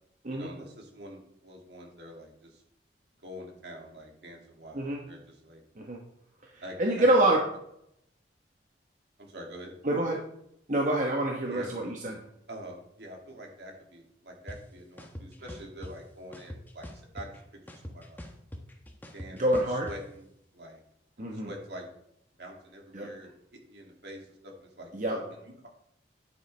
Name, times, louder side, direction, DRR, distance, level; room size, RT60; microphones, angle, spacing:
voice 1, 0.3-2.6 3.2-5.6 6.6-7.4 9.2-9.7 11.5-11.7 12.5-17.3 17.7-18.2 19.1-20.8 21.2-21.9 22.4-25.7, equal, 65° right, 0 dB, 2.4 m, -46 dB
voice 2, 6.8-7.4 9.8-10.2 10.7-12.1 19.4-19.9 21.2-21.5 22.9-23.1 24.9-25.2, right 1 dB, 45° right, -1 dB, 1.1 m, -26 dB
sound 1, 14.5-14.6 15.0-15.9 16.3-17.4 17.7-20.0, equal, 10° left, 1.0 m, -42 dB
10.0 x 9.4 x 3.3 m, 0.76 s
head